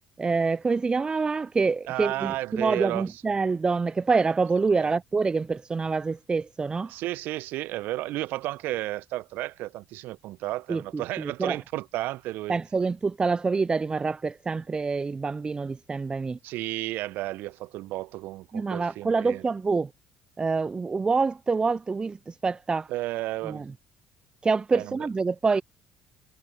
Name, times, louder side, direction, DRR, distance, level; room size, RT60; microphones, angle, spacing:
voice 1, 0.2-6.9 10.7-11.6 12.5-16.4 18.5-19.9 20.4-22.9 23.4-23.7 24.4-25.6, right 4 dB, 25° right, 0.5 m, -26 dB
voice 2, 1.9-3.1 4.8-4.9 6.9-12.6 16.4-19.4 22.9-23.6 24.7-25.0, right 17 dB, 65° right, 0.9 m, -32 dB
hypercardioid pair, 55°, 4 cm